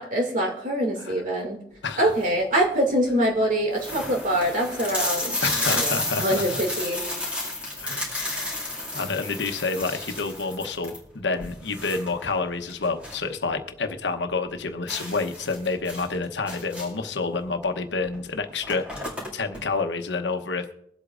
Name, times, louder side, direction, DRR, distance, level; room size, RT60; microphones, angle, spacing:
voice 1, 0.0-1.6 2.0-7.0, right 1 dB, 50° right, 2 dB, 2.3 m, -24 dB
sound 1, 1.9-2.4 3.0-3.1 3.3-3.4 3.7-13.3 13.6-13.7 14.1-14.2 14.9-17.1 18.1-18.2 18.5-19.6, left 1 dB, 5° right, 2.4 m, -31 dB
voice 2, 5.4-6.6 7.8-8.3 8.9-20.7, left 4 dB, 85° left, 7 dB, 1.0 m, -29 dB
23.0 x 8.1 x 2.5 m, 0.74 s
head